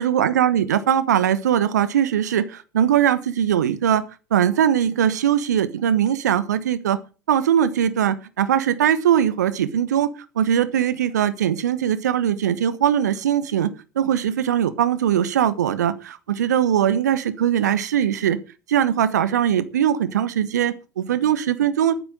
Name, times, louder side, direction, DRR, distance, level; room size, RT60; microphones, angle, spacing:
voice 1, 0.0-4.0 4.3-7.0 7.3-10.1 10.3-18.4 18.7-22.0, right 9 dB, 70° right, 1.3 m, -20 dB
11.5 x 9.9 x 6.4 m
figure-of-eight pair, 80°, 10 cm